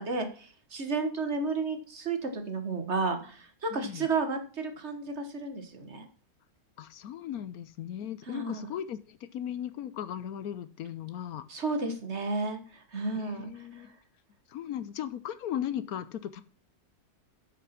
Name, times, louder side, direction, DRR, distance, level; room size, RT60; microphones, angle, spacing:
voice 1, 0.0-6.1 8.3-8.6 11.5-13.9, right 3 dB, 45° right, 6 dB, 1.6 m, -32 dB
voice 2, 3.7-4.1 6.8-11.4 13.2-14.0 14.5-16.4, left 10 dB, 70° left, 14 dB, 1.1 m, -37 dB
8.3 x 5.9 x 5.8 m, 0.41 s
omnidirectional pair, 1.7 m